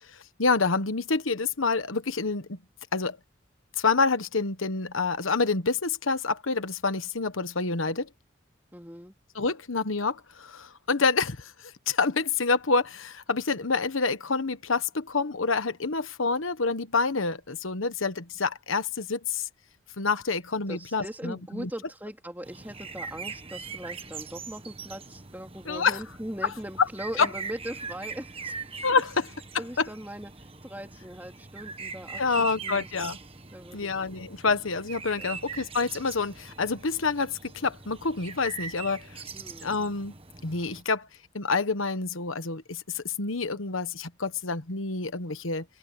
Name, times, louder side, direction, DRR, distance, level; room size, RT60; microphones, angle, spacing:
voice 1, 0.4-2.6 2.9-3.2 3.8-8.1 9.3-19.5 20.0-21.7 25.7-26.0 27.2-27.3 28.8-29.2 29.8-29.9 32.2-33.2 33.7-39.2 39.6-40.1 40.4-41.1 41.3-45.6, left 4 dB, 85° left, 1.3 m, -27 dB
voice 2, 8.7-9.1 20.7-28.9 29.6-32.9 33.5-34.1 35.2-35.4 39.3-39.7, right 1 dB, 10° right, 3.4 m, -40 dB
sound 1, 22.4-40.8, right 5 dB, 30° right, 1.5 m, -42 dB
open air
head